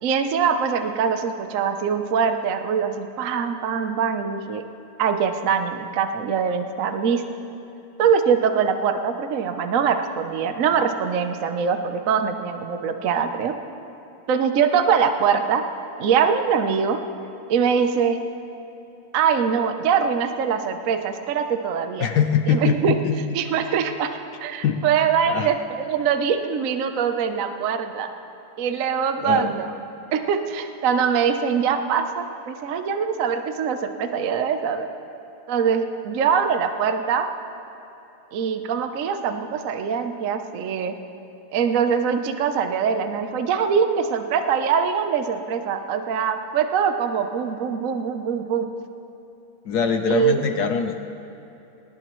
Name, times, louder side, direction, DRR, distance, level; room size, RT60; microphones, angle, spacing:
voice 1, 0.0-4.6 5.0-7.2 8.0-13.5 14.3-15.6 16.0-17.0 17.5-18.2 19.1-22.1 22.5-23.0 23.3-28.1 28.6-29.7 30.1-34.9 35.5-37.3 38.3-40.9 41.5-48.7 50.1-50.4, right 7 dB, 70° right, 7 dB, 0.7 m, -23 dB
voice 2, 22.0-23.2 24.6-24.8 25.3-25.5 29.2-29.5 49.6-51.0, left 6 dB, 70° left, 6 dB, 0.9 m, -22 dB
20.0 x 19.0 x 3.1 m, 3.0 s
omnidirectional pair, 2.4 m